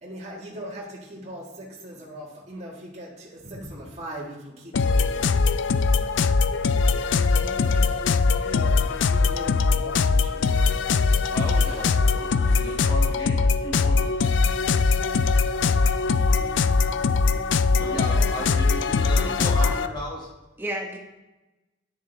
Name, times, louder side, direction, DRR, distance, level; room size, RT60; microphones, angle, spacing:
voice 1, 0.0-5.4 7.7-8.0 8.4-10.6 11.5-11.9 12.4-12.6 16.2-16.4 19.4-19.7, right 1 dB, 35° right, -3 dB, 1.7 m, -40 dB
sound 1, 4.7-19.9, left 4 dB, 80° left, 0.4 m, -21 dB
voice 2, 7.4-7.8 17.8-18.4 19.1-19.4 20.6-21.0, right 1 dB, 10° right, 1 dB, 1.1 m, -36 dB
voice 3, 11.3-14.0 17.8-20.3, equal, 25° left, -3 dB, 1.9 m, -35 dB
9.6 x 6.5 x 3.3 m, 1.0 s
head